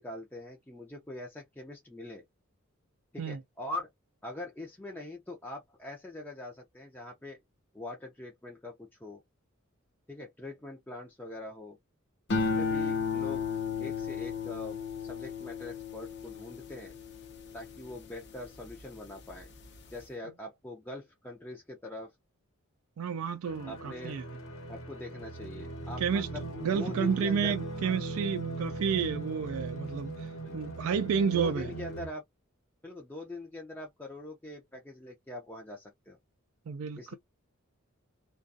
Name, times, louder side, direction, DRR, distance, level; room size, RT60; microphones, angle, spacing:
voice 1, 0.0-2.2 3.1-3.9 4.2-7.4 7.7-9.2 10.1-11.8 12.3-13.4 13.8-16.9 17.5-19.5 19.9-22.1 23.7-24.2 24.7-26.4 26.7-28.0 30.4-30.7 31.3-32.2 32.8-36.2 37.0-37.1, left 2 dB, 10° left, 0.4 m, -43 dB
sound 1, 12.3-18.8 19.3-19.8, left 5 dB, 55° left, 0.6 m, -34 dB
voice 2, 23.0-24.2 26.0-31.7 36.7-37.1, right 6 dB, 75° right, 0.3 m, -31 dB
sound 2, 23.4-32.1, right 2 dB, 75° left, 0.9 m, -39 dB
2.4 x 2.3 x 2.5 m
head